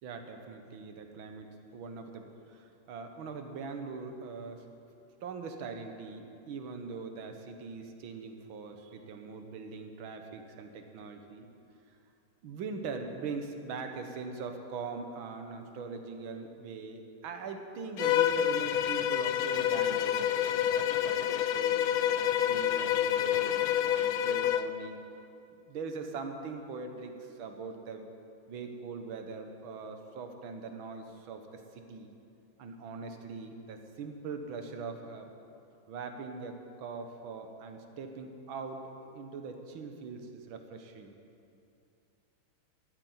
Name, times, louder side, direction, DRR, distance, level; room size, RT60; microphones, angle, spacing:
voice 1, 0.0-4.7 5.2-11.5 12.4-20.3 20.5-25.0 25.7-28.1 28.5-32.1 32.6-35.3 35.9-41.1, right 4 dB, 75° right, 5 dB, 2.0 m, -42 dB
Bowed string instrument, 18.0-24.7, left 10 dB, 90° left, 0.7 m, -28 dB
13.0 x 9.7 x 9.4 m, 2.7 s
omnidirectional pair, 2.2 m